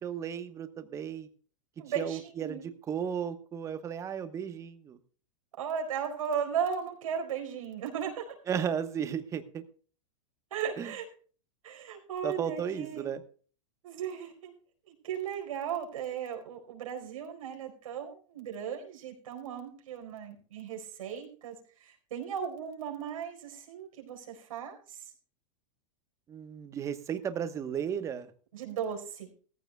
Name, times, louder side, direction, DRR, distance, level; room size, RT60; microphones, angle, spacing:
voice 1, 0.0-1.3 2.0-5.0 8.5-9.6 10.8-10.9 12.2-13.2 26.3-28.3, right 8 dB, 20° right, 10 dB, 1.1 m, -34 dB
voice 2, 1.8-2.6 5.6-8.3 10.5-11.0 11.6-13.1 13.8-14.5 14.8-25.0 28.5-29.3, right 7 dB, 90° right, 2 dB, 4.4 m, -36 dB
17.0 x 14.5 x 2.2 m, 0.41 s
supercardioid pair, 155°, 17 cm